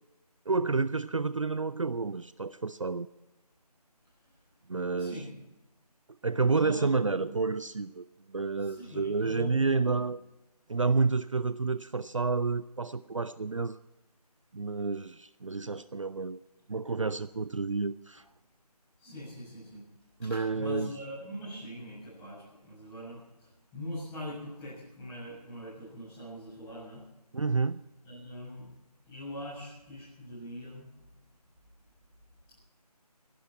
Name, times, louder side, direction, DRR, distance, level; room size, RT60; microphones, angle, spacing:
voice 1, 0.5-3.1 4.7-5.2 6.2-10.2 10.7-13.8 14.5-16.4 16.7-18.2 20.2-20.9 27.3-27.8, right 4 dB, 50° right, 0.5 m, -30 dB
voice 2, 4.8-5.4 6.5-7.4 8.6-10.0 19.0-19.8 20.2-27.0 28.0-28.7 29.1-30.9, equal, 10° left, 7.0 m, -42 dB
25.5 x 12.0 x 4.4 m
figure-of-eight pair, 165°, 20 cm